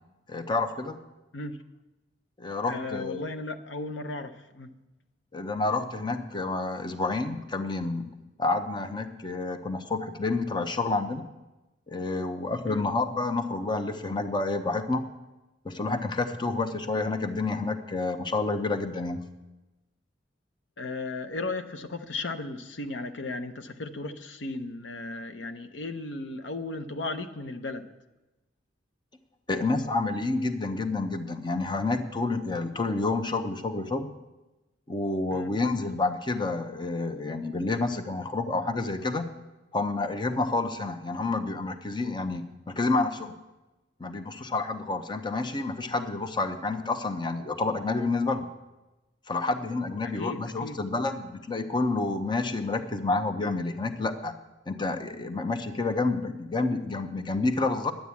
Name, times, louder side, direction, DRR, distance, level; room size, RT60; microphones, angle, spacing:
voice 1, 0.3-1.0 2.4-3.3 5.3-8.1 8.4-11.2 11.9-15.0 15.6-19.2 29.5-34.1 34.9-39.3 39.7-43.4 44.0-48.5 49.3-54.3 54.7-57.9, left 3 dB, 25° left, 8 dB, 0.8 m, -29 dB
voice 2, 2.7-4.7 12.7-12.8 20.8-27.9 35.3-35.5 50.1-50.8, left 2 dB, 80° left, 9 dB, 0.8 m, -35 dB
10.5 x 9.1 x 8.4 m, 1.1 s
head